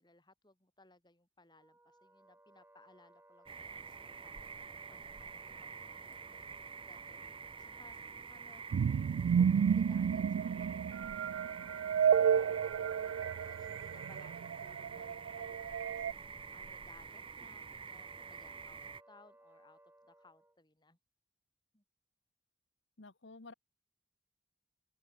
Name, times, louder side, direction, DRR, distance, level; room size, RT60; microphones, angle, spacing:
voice 1, 0.0-6.6 6.8-8.0 8.3-8.6 9.4-16.3 16.5-18.8 19.1-21.0 21.7-21.8, left 2 dB, 25° left, 5.8 m, -64 dB
Wind instrument woodwind instrument, 1.5-20.6, right 1 dB, 10° right, 1.6 m, -63 dB
sound 1, 3.5-19.0, right 5 dB, 30° right, 0.7 m, -48 dB
sound 2, 8.7-16.1, right 7 dB, 80° right, 0.3 m, -31 dB
voice 2, 23.0-23.5, left 3 dB, 75° left, 1.3 m, -52 dB
open air
head